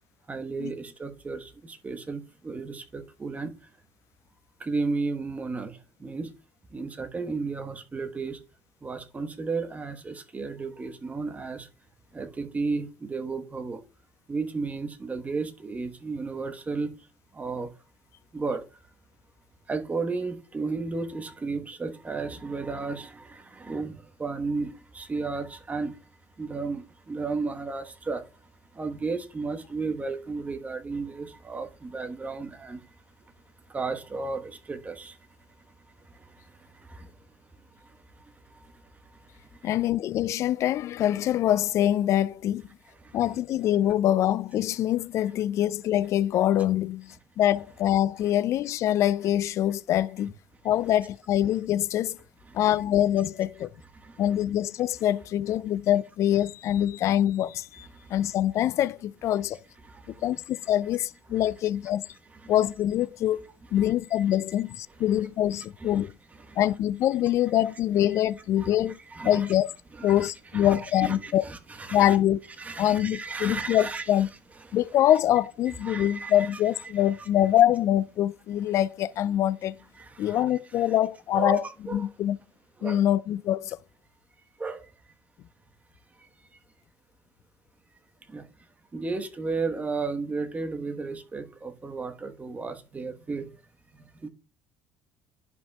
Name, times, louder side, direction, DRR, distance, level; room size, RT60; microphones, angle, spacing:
voice 1, 0.3-3.7 4.6-6.3 6.7-8.4 8.8-11.7 12.1-13.8 14.3-17.1 17.3-17.7 18.3-18.8 19.7-26.1 26.4-28.3 28.7-33.0 33.6-35.2 35.6-37.3 37.6-39.7 43.0-43.2 52.5-52.6 53.9-54.2 57.9-58.2 59.8-60.3 61.3-61.5 62.3-62.5 63.8-63.9 65.1-65.2 65.5-66.1 66.4-66.6 68.6-68.8 69.1-69.5 69.9-72.2 72.6-74.2 74.6-74.8 75.7-76.6 77.1-77.3 79.9-80.5 80.9-81.0 81.3-82.1 82.8-83.0 84.6-84.9 86.2-86.3 88.3-93.6 93.9-94.3, right 4 dB, 25° right, 1.2 m, -34 dB
voice 2, 39.6-42.7 43.1-50.3 50.6-52.2 52.5-53.7 54.2-59.6 60.1-62.1 62.5-63.4 63.7-66.1 66.6-69.0 69.2-69.7 70.0-71.4 71.9-72.4 72.8-74.3 74.7-79.8 80.2-81.6 81.9-82.4 82.8-83.8, left 12 dB, 55° left, 0.4 m, -24 dB
11.0 x 5.2 x 2.3 m
hypercardioid pair, 65°, 6 cm